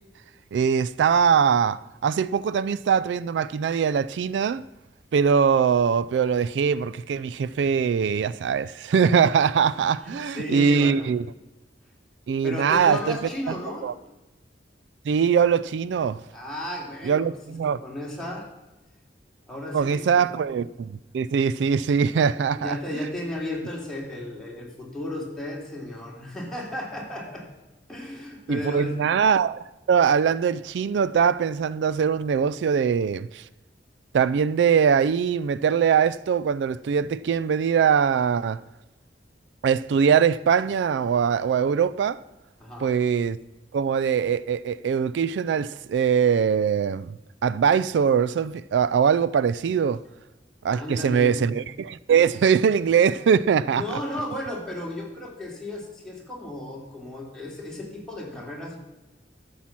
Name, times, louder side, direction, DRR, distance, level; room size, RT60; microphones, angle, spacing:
voice 1, 0.5-4.6 5.1-11.2 12.3-13.2 13.8-13.9 15.1-16.2 17.0-17.8 19.7-22.8 28.5-33.5 34.1-38.6 39.6-42.2 42.8-43.4 43.7-50.0 50.6-53.8, right 7 dB, 75° right, 0.3 m, -22 dB
voice 2, 10.0-11.1 12.4-13.9 16.3-17.6 17.8-18.5 19.5-20.3 22.5-27.4 27.9-29.0 42.6-42.9 50.7-51.4 53.7-58.8, left 1 dB, 5° left, 3.0 m, -34 dB
12.5 x 7.4 x 5.9 m
head